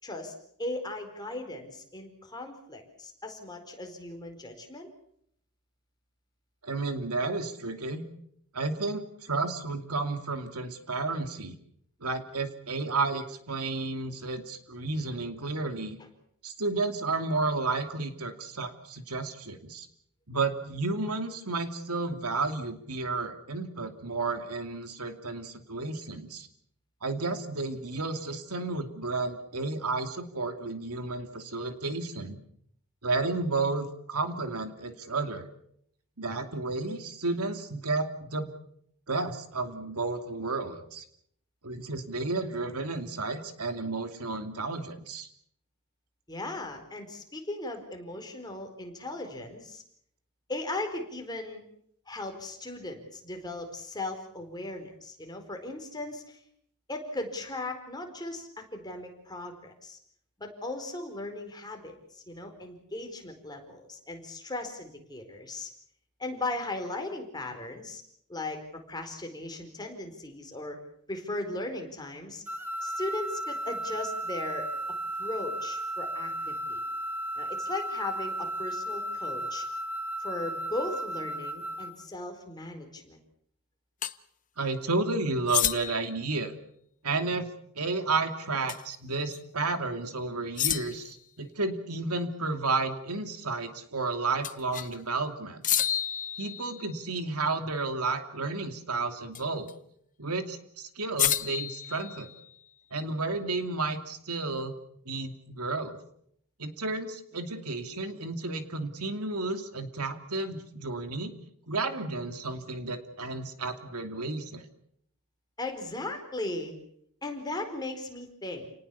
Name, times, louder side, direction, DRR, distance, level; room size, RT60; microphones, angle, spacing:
voice 1, 0.0-4.9 46.3-49.8 50.5-51.6 52.1-56.4 56.9-60.0 60.4-65.7 66.2-68.0 68.3-68.6 68.9-70.8 71.1-72.4 72.8-74.7 75.2-76.8 77.4-79.7 80.2-83.2 115.6-116.7 117.2-118.7, left 2 dB, 20° left, 4 dB, 4.5 m, -37 dB
voice 2, 6.6-8.0 8.5-11.5 12.0-16.0 16.4-19.9 20.3-26.5 27.0-32.4 33.0-35.5 36.2-38.5 39.1-41.0 41.6-45.3 84.6-86.5 87.0-87.5 87.7-95.6 96.4-99.7 100.2-102.3 102.9-104.7 105.1-106.0 106.6-111.3 111.7-114.7, right 3 dB, 80° right, 7 dB, 2.7 m, -32 dB
sound 1, 72.5-82.0, right 1 dB, 10° right, 2.9 m, -34 dB
sound 2, 84.0-84.2 85.5-86.1 88.7-88.9 89.3-89.4 90.6-91.2 94.4-95.0 95.6-97.0 99.3-99.7 101.2-102.6, left 11 dB, 35° left, 0.9 m, -30 dB
30.0 x 19.0 x 7.1 m, 0.71 s
head